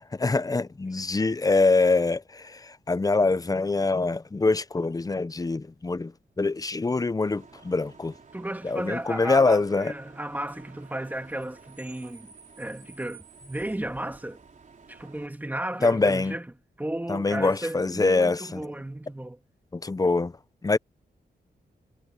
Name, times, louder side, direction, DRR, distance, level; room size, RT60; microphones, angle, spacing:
voice 1, 0.0-8.1 8.6-9.9 15.8-16.3 17.1-18.7 19.7-20.3 20.6-20.8, left 3 dB, 20° left, 0.7 m, -24 dB
Bus / Idling / Screech, 7.3-15.3, right 5 dB, 50° right, 3.9 m, -52 dB
voice 2, 8.3-14.4 14.9-16.5 16.8-19.4, right 1 dB, 10° right, 2.4 m, -34 dB
wide cardioid pair, 105°, 17 cm